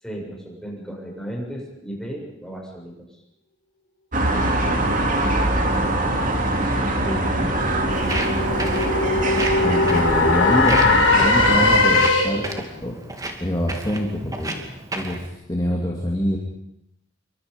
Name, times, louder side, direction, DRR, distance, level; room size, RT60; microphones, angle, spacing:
voice 1, 0.0-2.9, right 1 dB, 5° left, -2 dB, 7.4 m, -34 dB
sound 1, 4.1-11.8, right 1 dB, 40° right, 3.3 m, -23 dB
voice 2, 4.6-5.3 7.0-7.9 9.6-12.4 12.8-13.0 13.4-16.4, equal, 20° left, -2 dB, 2.9 m, -26 dB
sound 2, 6.6-12.6, left 3 dB, 80° left, 4.6 m, -20 dB
Walk footsteps, 7.9-15.3, right 2 dB, 20° right, 2.6 m, -33 dB
27.5 x 24.5 x 5.5 m, 0.80 s
head